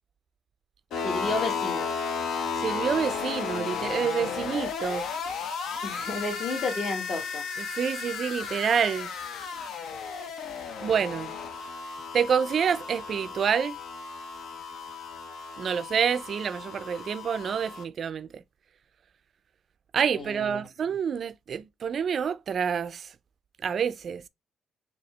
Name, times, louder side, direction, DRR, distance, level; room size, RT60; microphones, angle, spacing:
sound 1, 0.9-17.8, left 6 dB, 75° left, 0.7 m, -34 dB
voice 1, 1.0-1.9 5.8-7.4 20.1-20.6, left 3 dB, 45° left, 1.4 m, -32 dB
voice 2, 2.6-5.1 7.8-9.1 10.8-11.3 12.1-13.8 15.6-18.4 19.9-23.1 23.6-24.2, right 7 dB, 55° right, 0.3 m, -27 dB
4.3 x 2.7 x 3.1 m
cardioid pair, 90°, 0 cm